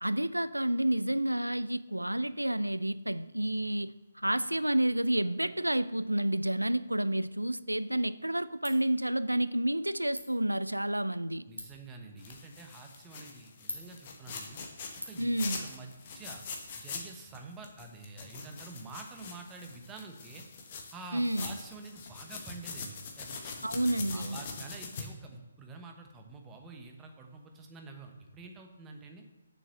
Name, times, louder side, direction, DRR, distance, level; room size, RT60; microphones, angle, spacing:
voice 1, 0.0-11.5 15.2-15.7 21.1-21.6 23.6-24.4, right 1 dB, 85° right, 0.4 m, -30 dB
Ratchet pawl, 7.5-16.6, left 1 dB, 85° left, 2.2 m, -50 dB
voice 2, 11.5-14.6 15.0-15.3 15.6-16.4 16.8-20.5 20.9-23.6 24.1-29.2, right 3 dB, 15° right, 1.0 m, -48 dB
sound 1, 12.2-17.4 17.6-25.0, left 5 dB, 35° left, 1.3 m, -43 dB
7.3 x 6.7 x 6.5 m
figure-of-eight pair, 140°, 0 cm